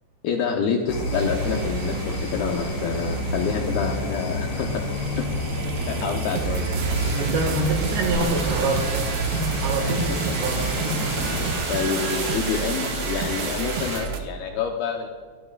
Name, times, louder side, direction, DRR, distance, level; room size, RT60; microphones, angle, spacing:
voice 1, 0.2-4.8 5.2-5.3 5.9-6.7 9.8-10.0 10.3-10.4 11.7-15.1, left 6 dB, 75° left, 2 dB, 2.4 m, -27 dB
sound 1, 0.9-11.5, equal, 30° left, 2.2 m, -29 dB
sound 2, 1.1-14.2, right 8 dB, 90° right, 3.3 m, -32 dB
sound 3, 6.7-14.0, right 2 dB, 50° right, 4.7 m, -31 dB
voice 2, 7.1-11.6, right 2 dB, 70° right, 3 dB, 3.8 m, -27 dB
24.0 x 12.0 x 2.4 m, 1.5 s
omnidirectional pair, 5.3 m